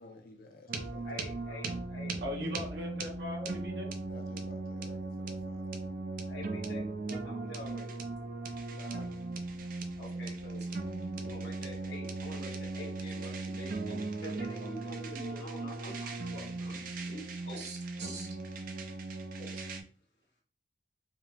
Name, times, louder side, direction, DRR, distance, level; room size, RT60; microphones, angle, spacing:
voice 1, 0.0-1.1 4.0-6.0 8.7-9.1, left 3 dB, 55° left, 0.5 m, -54 dB
sound 1, 0.7-19.8, right 3 dB, 50° right, 0.5 m, -38 dB
voice 2, 1.0-2.5 6.3-7.9 10.0-10.6 11.2-17.7 18.0-18.1 19.4-19.5, equal, 70° left, 1.6 m, -47 dB
voice 3, 2.2-3.9 17.6-18.3, left 1 dB, 70° right, 1.3 m, -40 dB
5.0 x 2.0 x 3.3 m
head